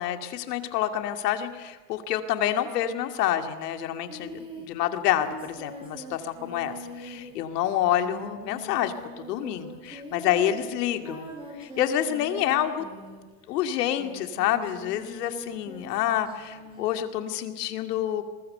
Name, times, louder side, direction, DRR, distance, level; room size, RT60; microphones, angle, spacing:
voice 1, 0.0-11.3 11.6-12.8 13.5-18.2, left 11 dB, 75° left, 7 dB, 2.5 m, -28 dB
Singing, 4.1-13.5 13.9-16.9, equal, 10° right, 6.9 m, -43 dB
28.0 x 22.5 x 6.9 m, 1.3 s
supercardioid pair, 165°, 49 cm